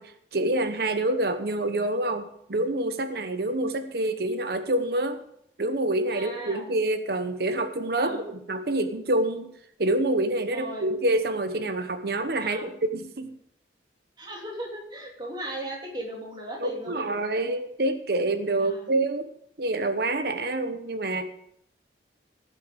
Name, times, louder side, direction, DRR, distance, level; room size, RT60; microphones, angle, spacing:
voice 1, 0.0-5.2 5.6-9.5 9.8-13.3 16.6-19.3 19.6-21.2, right 2 dB, 60° right, 9 dB, 1.0 m, -27 dB
voice 2, 6.1-6.7 7.9-8.4 10.5-11.0 12.4-12.7 14.2-17.1 18.6-18.9, right 1 dB, 25° right, -1 dB, 2.8 m, -37 dB
16.5 x 7.8 x 5.1 m, 0.71 s
head